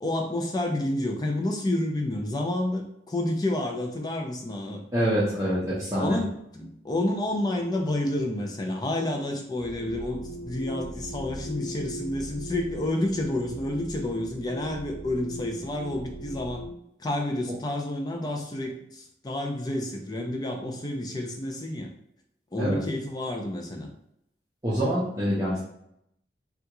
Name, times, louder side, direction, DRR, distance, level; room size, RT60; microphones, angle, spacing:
voice 1, 0.0-4.8 6.0-16.6 17.0-21.9 22.5-23.9, left 1 dB, 20° left, 2 dB, 0.4 m, -29 dB
voice 2, 4.9-6.2 22.6-22.8 24.6-25.6, equal, 20° right, -9 dB, 0.7 m, -25 dB
sound 1, 9.6-16.8, equal, 50° left, 1.3 m, -39 dB
3.4 x 2.4 x 2.9 m, 0.77 s
head